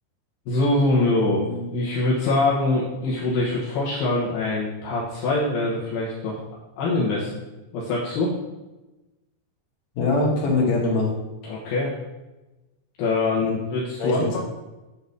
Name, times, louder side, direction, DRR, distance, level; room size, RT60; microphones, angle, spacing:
voice 1, 0.5-6.3 6.8-7.3 7.7-8.3 11.5-11.9 13.0-14.4, left 2 dB, 70° left, -5 dB, 2.4 m, -23 dB
voice 2, 9.9-11.1 13.4-13.5 14.0-14.4, left 3 dB, 50° left, -3 dB, 2.8 m, -22 dB
8.8 x 4.1 x 6.7 m, 1.1 s
omnidirectional pair, 5.9 m